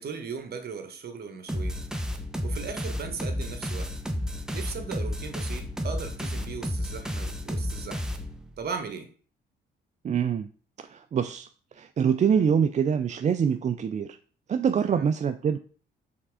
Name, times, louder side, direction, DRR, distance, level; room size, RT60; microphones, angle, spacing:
voice 1, 0.0-1.8 2.4-3.9 4.5-8.1 8.6-9.1 14.8-15.1, right 5 dB, 50° right, 6 dB, 1.3 m, -37 dB
sound 1, 1.5-8.6, equal, 5° right, 0.8 m, -32 dB
voice 2, 10.0-10.5 10.9-11.5 11.7-14.2 14.5-15.6, right 7 dB, 35° right, 9 dB, 0.4 m, -25 dB
5.8 x 3.6 x 4.8 m, 0.41 s
cardioid pair, 90°, 20 cm